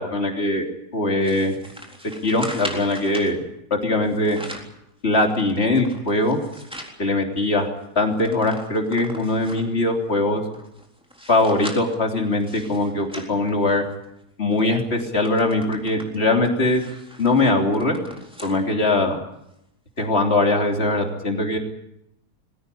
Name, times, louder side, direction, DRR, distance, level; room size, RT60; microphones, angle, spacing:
voice 1, 0.0-1.5 2.2-3.4 3.7-4.4 5.0-6.4 7.0-7.7 8.0-10.4 11.3-13.8 14.4-16.8 17.2-18.0 18.4-19.2 20.0-21.6, left 2 dB, 35° left, 3 dB, 3.6 m, -21 dB
sound 1, 1.2-3.3 4.1-4.8 5.2-7.0 7.4-7.5 7.8-9.8 10.4-14.1 14.5-14.7 15.0-18.6 19.0-19.1 20.0-20.1, equal, 5° right, 3.8 m, -39 dB
22.0 x 16.5 x 9.9 m, 0.83 s
omnidirectional pair, 1.8 m